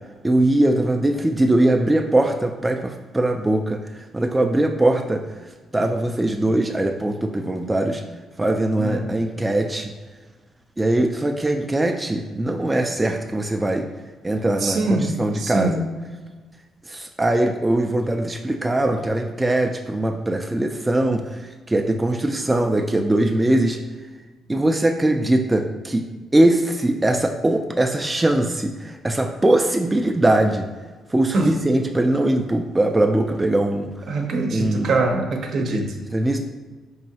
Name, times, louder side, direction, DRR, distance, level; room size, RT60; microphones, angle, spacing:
voice 1, 0.2-5.2 5.7-8.0 8.4-9.9 10.8-13.9 14.2-15.8 16.9-23.8 24.5-26.1 26.3-30.7 31.1-34.0 34.5-34.9 35.6-35.8 36.1-36.4, right 1 dB, 15° right, 3 dB, 0.3 m, -21 dB
voice 2, 8.8-9.2 14.6-15.8 31.3-31.5 34.1-36.0, right 2 dB, 65° right, 3 dB, 0.7 m, -23 dB
4.6 x 3.1 x 2.8 m, 1.3 s
cardioid pair, 90°, 0 cm